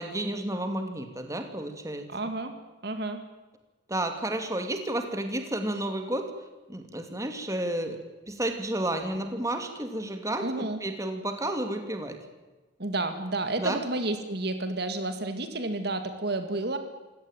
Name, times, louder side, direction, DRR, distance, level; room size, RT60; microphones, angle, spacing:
voice 1, 0.0-2.1 3.9-6.3 6.7-8.0 8.3-12.2 13.6-13.8, right 1 dB, 15° right, 6 dB, 2.7 m, -31 dB
voice 2, 2.1-2.5 2.8-3.2 10.4-10.8 12.8-16.8, right 2 dB, 55° right, 8 dB, 2.2 m, -30 dB
26.5 x 17.5 x 9.2 m, 1.2 s
head